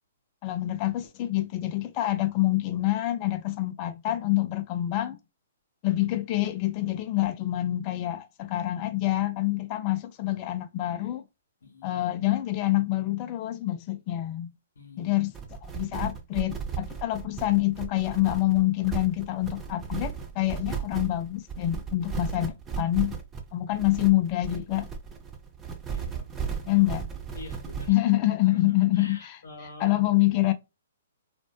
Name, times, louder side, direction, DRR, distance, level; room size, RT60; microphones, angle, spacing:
voice 1, 0.4-5.2 5.8-11.2 11.8-14.5 15.0-15.3 15.6-23.2 23.5-24.9 26.7-27.1 27.9-29.4 29.8-30.5, left 16 dB, 35° left, 0.4 m, -26 dB
voice 2, 11.6-11.9 14.8-15.1 25.9-26.6 27.3-28.0 28.5-28.6 28.9-30.0, left 3 dB, 80° left, 0.8 m, -46 dB
sound 1, 15.3-27.9, right 6 dB, 15° right, 0.5 m, -35 dB
2.5 x 2.2 x 2.2 m
hypercardioid pair, 130°, 0 cm